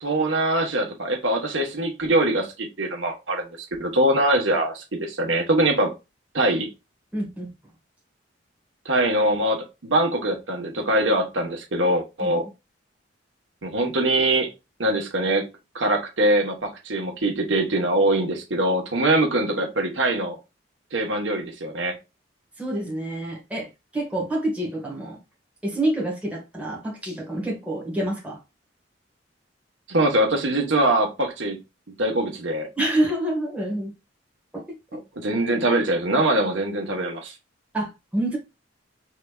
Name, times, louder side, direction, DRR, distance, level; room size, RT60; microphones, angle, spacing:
voice 1, 0.0-3.5 3.8-5.9 6.3-6.7 8.8-12.4 13.6-14.5 14.8-15.4 15.7-20.4 20.9-22.0 29.9-31.6 32.0-32.7 34.9-37.3, right 1 dB, 85° right, 1.1 m, -23 dB
voice 2, 7.1-7.5 12.2-12.3 22.6-25.2 25.6-28.4 32.8-33.9 34.5-35.0 37.7-38.4, right 1 dB, 5° right, 1.4 m, -27 dB
4.8 x 3.3 x 2.3 m
head